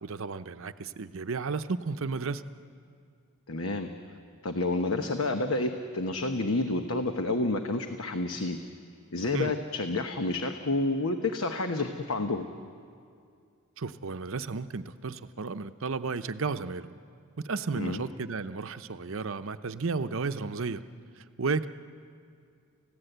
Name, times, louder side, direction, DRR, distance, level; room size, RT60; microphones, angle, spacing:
voice 1, 0.0-2.4 9.3-9.5 13.8-17.0 17.4-20.8 21.2-21.7, right 4 dB, 65° right, 11 dB, 0.7 m, -33 dB
voice 2, 3.5-3.9 4.4-8.6 9.1-12.5 17.7-18.0, left 2 dB, 70° left, 6 dB, 1.0 m, -29 dB
30.0 x 16.0 x 8.0 m, 2.3 s
head